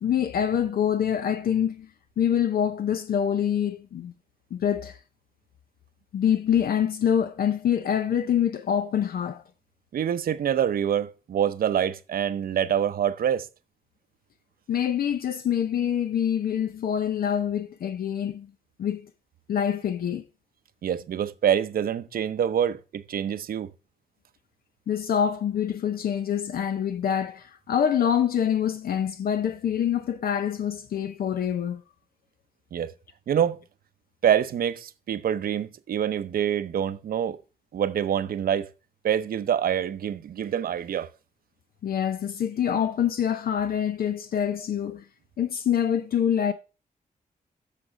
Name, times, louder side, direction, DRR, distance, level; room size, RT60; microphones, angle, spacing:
voice 1, 0.0-1.9 2.2-4.1 4.5-5.0 6.1-9.4 14.7-18.5 18.8-19.1 19.5-20.2 24.9-31.8 41.8-45.0 45.4-46.5, left 9 dB, 80° left, 0.7 m, -25 dB
voice 2, 9.9-13.5 20.8-23.7 32.7-32.9 33.3-33.6 34.2-37.4 37.7-38.7 39.0-41.1, right 9 dB, 80° right, 0.7 m, -26 dB
8.4 x 6.7 x 5.0 m
wide cardioid pair, 125°, 15 cm